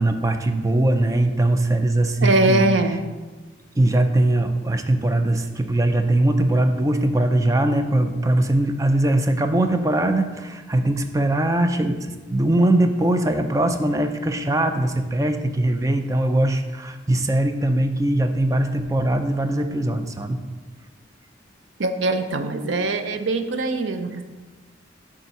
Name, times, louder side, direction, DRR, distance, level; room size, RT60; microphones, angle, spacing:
voice 1, 0.0-2.7 3.8-20.4, right 1 dB, 15° right, 7 dB, 0.4 m, -21 dB
voice 2, 2.2-3.0 21.8-24.2, right 2 dB, 90° right, 8 dB, 0.6 m, -22 dB
6.8 x 3.7 x 5.7 m, 1.3 s
head